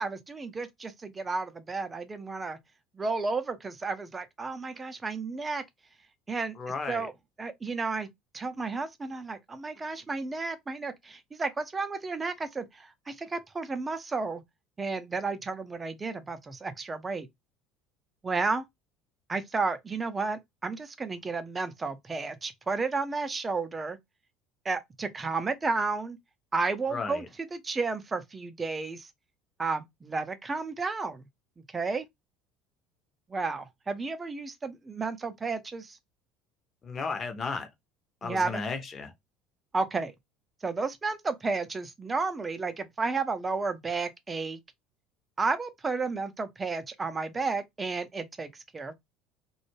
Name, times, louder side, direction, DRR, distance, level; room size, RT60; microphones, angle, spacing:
voice 1, 0.0-2.6 2.9-5.6 6.3-6.6 6.9-7.1 7.4-8.1 8.3-14.4 14.8-17.3 18.2-18.6 19.3-24.0 24.6-26.2 26.5-29.1 29.6-31.3 31.7-32.1 33.3-36.0 38.2-38.6 39.7-40.1 40.6-44.6 45.4-48.9, right 4 dB, 20° right, 0.5 m, -32 dB
voice 2, 6.6-7.1 26.9-27.3 36.8-37.7 38.2-39.1, left 4 dB, 35° left, 0.7 m, -34 dB
2.3 x 2.0 x 3.0 m
figure-of-eight pair, 65°, 0 cm